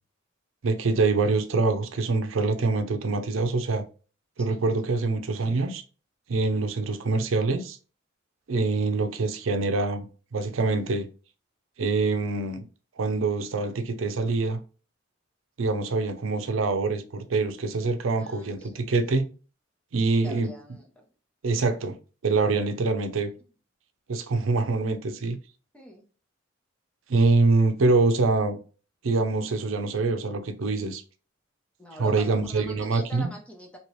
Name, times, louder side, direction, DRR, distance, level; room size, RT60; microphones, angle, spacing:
voice 1, 0.6-3.8 4.4-5.8 6.3-7.8 8.5-10.1 10.3-11.1 11.8-12.7 13.0-14.6 15.6-19.3 19.9-20.5 21.4-22.0 22.2-23.3 24.1-25.4 27.1-28.6 29.0-31.0 32.0-33.3, right 3 dB, 80° right, 0.5 m, -25 dB
voice 2, 18.2-18.9 20.2-21.1 22.5-22.6 25.7-26.0 31.8-33.8, equal, 5° left, 0.7 m, -44 dB
3.0 x 2.9 x 3.1 m
head